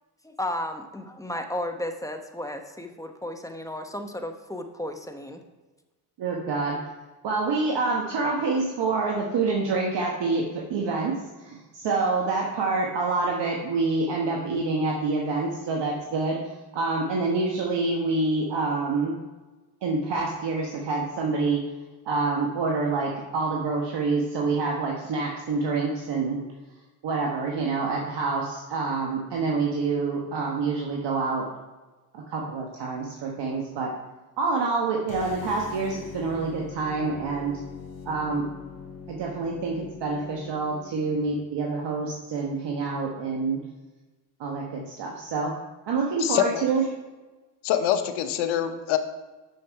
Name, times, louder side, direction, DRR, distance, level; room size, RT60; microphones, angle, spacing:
voice 1, 0.2-5.4, left 1 dB, 5° left, 5 dB, 1.0 m, -34 dB
voice 2, 6.2-6.8 7.2-11.2 11.4-19.2 19.8-21.6 22.0-26.4 27.0-31.4 32.1-33.9 34.4-37.6 38.0-38.5 39.1-43.6 44.4-45.6 45.9-46.8, right 3 dB, 60° right, -1 dB, 1.3 m, -27 dB
sound 1, 35.0-41.3, left 5 dB, 50° left, 2.1 m, -42 dB
voice 3, 46.2-46.6 47.6-49.0, left 10 dB, 75° left, 9 dB, 0.8 m, -25 dB
7.0 x 6.5 x 4.7 m, 1.2 s
supercardioid pair, 65°, 47 cm